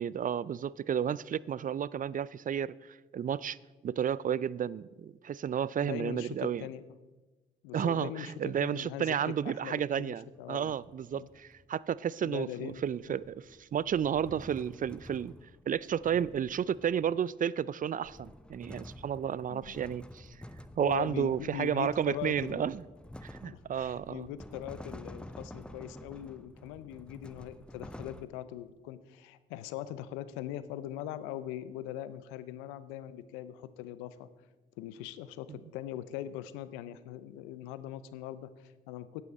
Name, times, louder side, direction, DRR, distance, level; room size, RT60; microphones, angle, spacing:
voice 1, 0.0-3.6 3.8-6.6 7.7-15.3 15.7-20.4 20.8-22.8 23.2-24.3 35.5-35.6, right 8 dB, 40° right, 0.4 m, -32 dB
voice 2, 5.8-6.8 7.6-9.1 9.4-10.7 11.1-11.3 12.2-12.8 13.1-13.2 19.5-19.8 20.8-22.7 23.5-34.3 34.8-39.2, left 12 dB, 85° left, 0.5 m, -41 dB
sound 1, 10.4-11.7 12.7-17.3 17.8-28.3, left 1 dB, 5° left, 0.8 m, -50 dB
11.0 x 9.8 x 4.2 m
hypercardioid pair, 40°, 20 cm